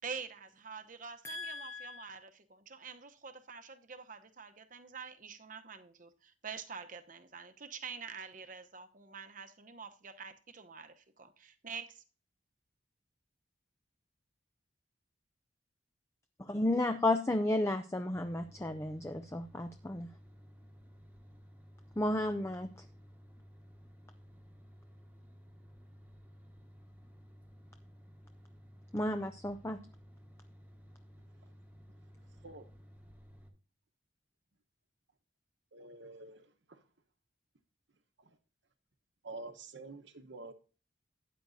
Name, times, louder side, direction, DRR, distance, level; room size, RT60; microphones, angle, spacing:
voice 1, 0.0-12.0, right 6 dB, 45° right, 0.8 m, -47 dB
voice 2, 1.2-2.1 16.5-20.1 22.0-22.7 28.9-29.8, left 1 dB, 15° left, 0.4 m, -33 dB
sound 1, 18.1-33.5, equal, 10° right, 1.2 m, -56 dB
voice 3, 35.7-36.8 38.2-38.4 39.2-40.5, right 2 dB, 70° right, 1.1 m, -48 dB
13.0 x 9.3 x 2.7 m
head